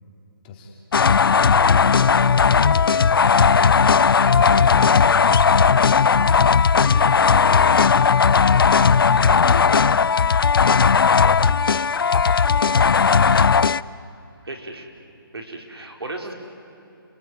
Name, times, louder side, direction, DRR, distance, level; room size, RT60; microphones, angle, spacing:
voice 1, 0.4-0.8 1.9-5.9 6.8-8.3 8.9-9.7 10.6-11.8 12.4-13.0, left 4 dB, 20° left, 0 dB, 3.1 m, -38 dB
sound 1, 0.9-13.8, left 6 dB, 65° left, 0.6 m, -16 dB
sound 2, 1.2-10.3, right 4 dB, 10° right, 1.1 m, -44 dB
voice 2, 14.4-14.9 15.3-16.3, right 2 dB, 90° right, 2 dB, 4.7 m, -34 dB
29.5 x 19.0 x 9.5 m, 2.9 s
hypercardioid pair, 160°, 13 cm